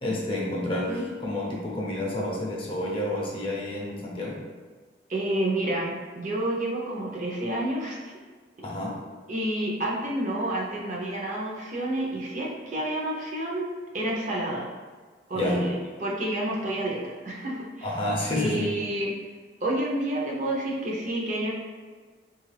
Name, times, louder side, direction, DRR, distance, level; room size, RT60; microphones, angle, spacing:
voice 1, 0.0-4.4 8.6-9.0 15.3-15.7 17.8-18.7, left 1 dB, 30° left, -3 dB, 0.6 m, -29 dB
voice 2, 5.1-8.1 9.3-13.7 13.9-14.7 15.3-17.9 18.3-19.2 19.6-21.5, right 1 dB, 45° right, -3 dB, 0.6 m, -29 dB
3.2 x 2.4 x 3.2 m, 1.5 s
head